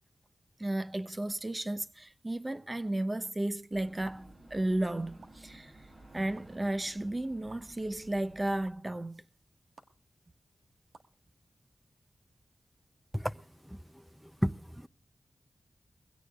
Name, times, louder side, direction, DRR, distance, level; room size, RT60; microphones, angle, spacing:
voice 1, 0.6-5.9 6.1-9.2, right 1 dB, 30° right, 0.9 m, -34 dB
sound 1, 3.7-8.7, right 1 dB, 50° right, 8.0 m, -55 dB
sound 2, 4.0-4.1 5.2-5.3 6.3-6.4 7.5-7.6 8.6-8.7 9.8-9.9 10.9-11.1, right 4 dB, 80° right, 1.7 m, -52 dB
voice 2, 14.2-14.9, equal, ahead, 0.6 m, -32 dB
23.0 x 16.5 x 2.4 m
cardioid pair, 55°, 0 cm